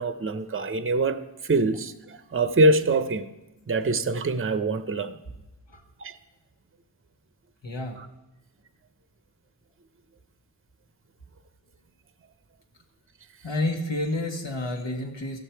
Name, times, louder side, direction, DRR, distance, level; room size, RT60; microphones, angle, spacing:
voice 1, 0.0-3.3 3.7-5.2 6.0-6.2 8.0-8.1, right 2 dB, 30° right, 11 dB, 0.6 m, -24 dB
voice 2, 7.6-8.0 13.4-15.4, left 2 dB, 85° left, 2 dB, 1.6 m, -29 dB
15.0 x 6.7 x 4.5 m, 1.0 s
wide cardioid pair, 40°, 43 cm